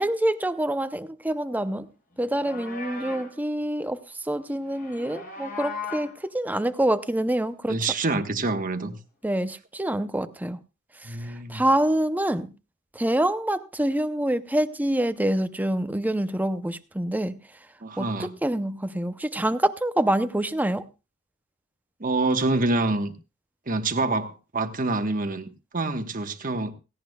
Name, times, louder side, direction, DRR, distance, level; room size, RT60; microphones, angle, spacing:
voice 1, 0.0-1.9 2.2-7.7 9.2-10.6 11.0-12.5 12.9-17.3 18.0-20.8, right 1 dB, 10° right, 0.6 m, -26 dB
Livestock farm animals working animals, 2.2-3.4 4.7-6.2, left 4 dB, 45° left, 4.7 m, -37 dB
voice 2, 7.7-9.0 11.0-11.6 17.8-18.3 22.0-23.1 23.7-26.7, right 2 dB, 40° right, 1.2 m, -26 dB
17.0 x 16.5 x 2.3 m
head